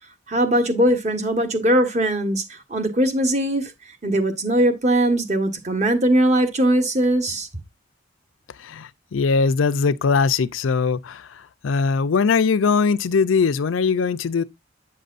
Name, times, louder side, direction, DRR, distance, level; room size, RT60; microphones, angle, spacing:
voice 1, 0.3-3.7 4.0-7.5, right 1 dB, 35° right, 1.3 m, -20 dB
voice 2, 8.6-14.4, left 5 dB, 90° left, 0.5 m, -21 dB
8.5 x 6.6 x 2.5 m
head